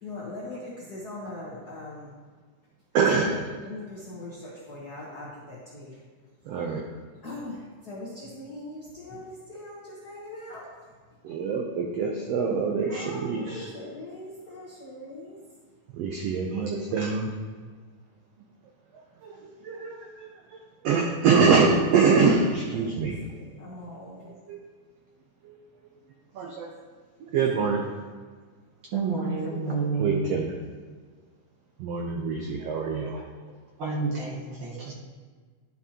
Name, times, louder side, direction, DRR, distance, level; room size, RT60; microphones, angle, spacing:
voice 1, 0.0-2.1 3.2-3.3 3.6-6.0 7.2-10.7 12.9-15.4 22.8-23.0 23.3-24.4, left 2 dB, 65° left, -6 dB, 0.9 m, -41 dB
voice 2, 2.9-3.5 6.4-6.8 11.2-13.7 15.9-17.3 19.2-20.6 20.8-23.2 24.5-24.6 25.4-25.6 26.3-26.7 27.3-27.8 29.7-30.5 31.8-33.2 34.7-34.9, right 5 dB, 80° right, 1 dB, 1.4 m, -25 dB
voice 3, 28.9-30.2 33.8-34.9, right 4 dB, 55° right, -5 dB, 1.8 m, -29 dB
11.0 x 5.8 x 2.9 m, 1.5 s
omnidirectional pair, 3.7 m